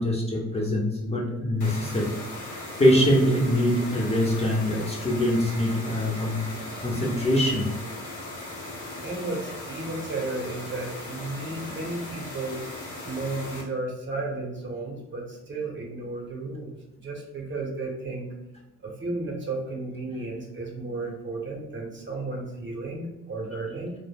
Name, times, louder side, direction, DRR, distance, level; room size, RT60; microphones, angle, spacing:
voice 1, 0.0-2.1 2.4-2.5 2.8-6.4 6.8-7.7, equal, 20° left, -3 dB, 0.6 m, -23 dB
sound 1, 1.6-13.6, left 2 dB, 75° left, 0.8 m, -38 dB
voice 2, 9.0-12.6 13.1-18.3 18.8-24.0, right 2 dB, 40° right, 0 dB, 0.7 m, -33 dB
2.1 x 2.1 x 3.2 m, 0.94 s
cardioid pair, 90°, 30 cm